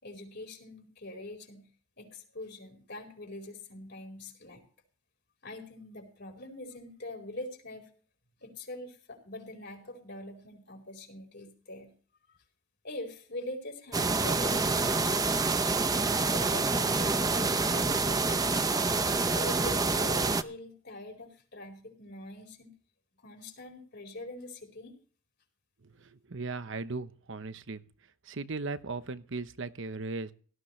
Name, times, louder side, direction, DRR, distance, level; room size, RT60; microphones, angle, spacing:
voice 1, 0.0-1.7 2.0-4.6 5.4-7.9 8.4-11.9 12.8-15.7 16.3-18.7 19.3-22.7 23.2-24.9, left 1 dB, 55° left, 3 dB, 4.6 m, -43 dB
sound 1, 13.9-20.4, right 3 dB, 20° right, 0.6 m, -27 dB
voice 2, 26.0-27.8 28.3-30.3, right 3 dB, 65° right, 12 dB, 0.9 m, -37 dB
17.5 x 13.5 x 3.2 m, 0.42 s
head